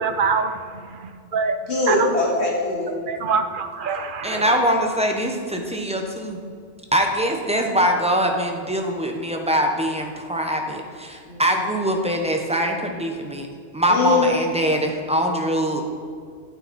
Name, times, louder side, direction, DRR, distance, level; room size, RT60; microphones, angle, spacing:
voice 1, 0.0-1.5 1.9-2.1 3.1-4.6, right 5 dB, 55° right, 8 dB, 0.7 m, -25 dB
voice 2, 1.7-2.9 11.3-11.7 13.9-14.7, left 3 dB, 70° left, -3 dB, 2.3 m, -22 dB
voice 3, 4.2-6.4 6.9-13.5 13.7-15.8, equal, 5° right, 2 dB, 0.9 m, -23 dB
9.3 x 9.0 x 4.2 m, 2.1 s
omnidirectional pair, 1.2 m